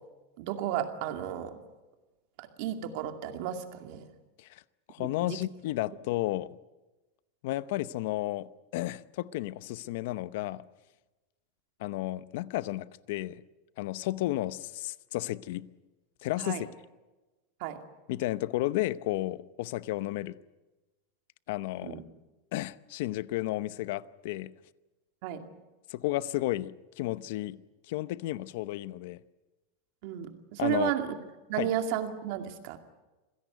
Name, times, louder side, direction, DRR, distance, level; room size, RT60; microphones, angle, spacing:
voice 1, 0.4-1.6 2.4-4.0 5.0-5.4 16.4-16.6 17.6-17.8 21.8-22.0 25.2-25.5 30.0-31.1 31.5-32.8, right 11 dB, 50° right, 2.3 m, -33 dB
voice 2, 4.9-6.6 7.4-10.6 11.8-13.4 13.8-15.7 16.2-16.7 18.1-20.4 21.5-22.0 22.5-24.5 25.9-27.6 27.9-29.2 30.6-30.9 31.6-31.7, left 16 dB, 55° left, 0.8 m, -32 dB
27.0 x 17.0 x 9.3 m
supercardioid pair, 170°, 0 cm